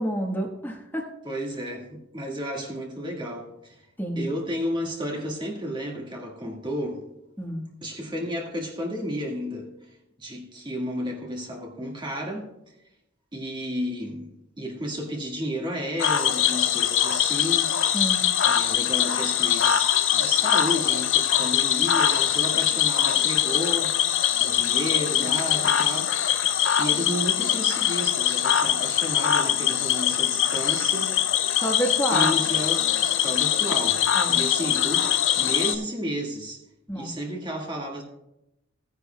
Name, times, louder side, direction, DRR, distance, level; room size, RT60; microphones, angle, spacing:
voice 1, 0.0-1.0 4.0-4.3 7.4-7.6 17.9-18.3 31.6-32.3 34.1-34.4 36.9-37.1, right 1 dB, 10° left, 1.3 m, -28 dB
voice 2, 1.2-3.8 4.2-7.0 7.8-9.7 10.2-12.5 13.3-17.7 18.5-23.9 24.4-26.3 26.8-31.2 32.1-35.1 35.4-36.6 36.9-38.0, equal, 25° right, 1.7 m, -32 dB
Cricket / Frog, 16.0-35.8, left 10 dB, 70° left, 0.6 m, -23 dB
16.5 x 9.5 x 2.2 m
head